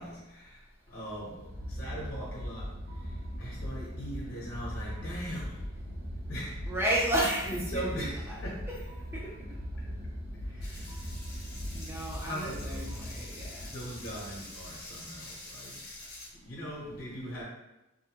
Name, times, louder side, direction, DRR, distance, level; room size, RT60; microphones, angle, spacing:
voice 1, 0.0-5.7 6.3-6.7 7.1-8.6 10.4-11.5 12.2-12.9 13.6-17.4, equal, 50° left, -6 dB, 1.0 m, -41 dB
sound 1, 1.2-15.2, equal, 75° right, 0.5 m, -40 dB
voice 2, 6.7-7.8 9.1-9.3 10.6-10.8 11.7-13.8, right 1 dB, 10° right, -4 dB, 0.6 m, -32 dB
sound 2, 10.6-16.3, left 2 dB, 85° left, 0.6 m, -47 dB
2.7 x 2.2 x 2.9 m, 0.98 s
head